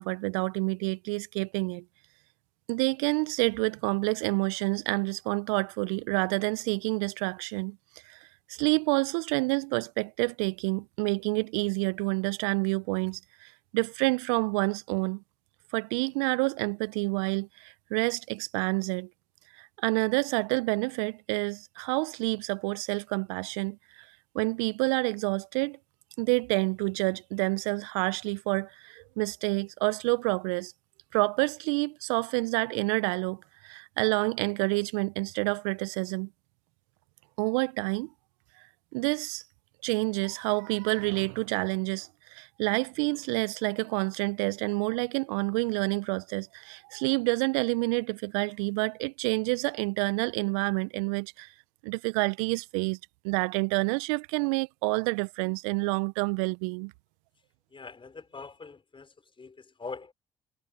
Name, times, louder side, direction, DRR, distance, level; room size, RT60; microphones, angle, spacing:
voice 1, 0.0-1.8 2.7-7.8 8.1-8.2 8.5-15.2 15.7-19.1 19.6-23.8 24.3-25.8 26.2-30.7 31.1-36.3 37.4-38.1 38.9-39.4 39.8-51.5 51.8-53.0 53.2-56.9, right 30 dB, 75° right, 1.3 m, -28 dB
voice 2, 57.7-60.1, left 4 dB, 30° left, 5.8 m, -43 dB
figure-of-eight pair, 45°, 17 cm